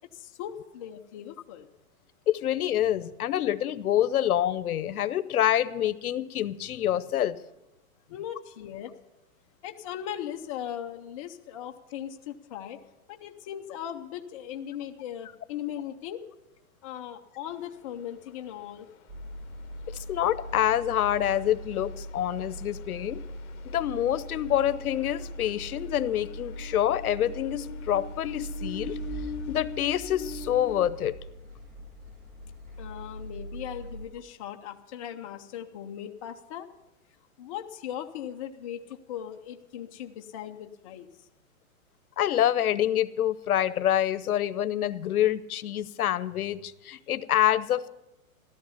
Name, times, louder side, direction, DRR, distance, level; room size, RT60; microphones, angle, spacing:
voice 1, 0.1-1.7 8.1-8.9 9.6-12.8 13.1-16.2 16.8-18.9 32.8-36.7 37.4-41.1, left 10 dB, 25° left, 4 dB, 0.6 m, -38 dB
voice 2, 2.3-7.4 19.9-23.2 23.6-29.0 29.5-31.1 42.2-47.9, left 11 dB, 85° left, 15 dB, 0.8 m, -26 dB
sound 1, 17.5-30.9, left 7 dB, 55° left, 1.3 m, -45 dB
sound 2, 19.1-34.0, right 1 dB, 15° right, 1.6 m, -41 dB
14.5 x 13.0 x 5.7 m, 0.95 s
hypercardioid pair, 160°, 43 cm